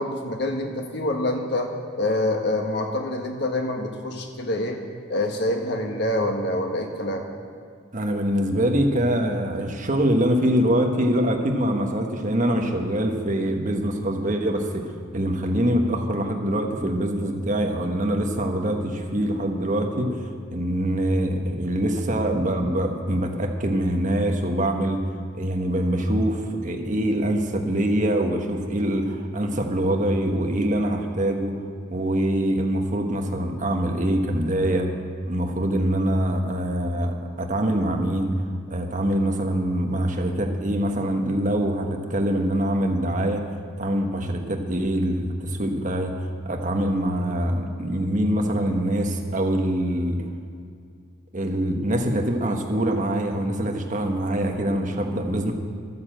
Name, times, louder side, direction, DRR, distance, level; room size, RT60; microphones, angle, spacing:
voice 1, 0.0-4.8 5.1-7.2, left 1 dB, 55° left, 3 dB, 1.5 m, -26 dB
voice 2, 7.9-20.1 20.5-25.0 25.3-31.5 31.9-34.9 35.3-38.3 38.7-43.4 43.8-50.2 51.3-55.5, right 1 dB, 40° right, 3 dB, 1.3 m, -24 dB
12.5 x 9.5 x 7.8 m, 2.2 s
head